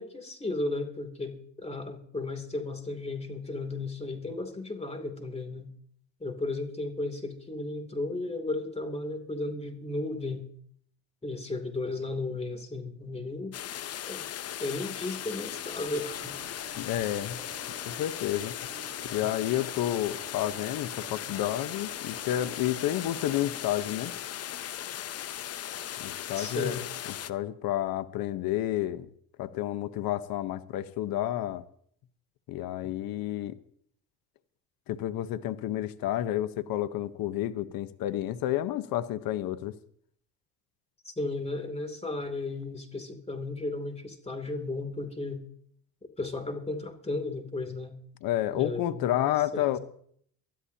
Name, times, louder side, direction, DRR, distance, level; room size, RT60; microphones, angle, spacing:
voice 1, 0.0-5.7 6.2-10.5 11.2-13.6 14.1-14.2 14.6-16.3 26.4-26.8 41.0-45.4 46.2-47.9 48.5-49.2 49.5-49.8, left 2 dB, 15° left, 6 dB, 2.8 m, -34 dB
sound 1, 13.5-27.3, left 11 dB, 40° left, 0.7 m, -38 dB
sound 2, 15.7-23.6, right 5 dB, 30° right, 6.3 m, -50 dB
voice 2, 16.8-17.4 17.9-18.5 19.1-24.1 26.0-26.8 27.3-29.1 29.4-31.6 32.5-33.5 34.9-39.7 48.2-49.8, left 13 dB, 70° left, 12 dB, 1.0 m, -30 dB
23.5 x 13.0 x 2.8 m, 0.62 s
supercardioid pair, 85°, 37 cm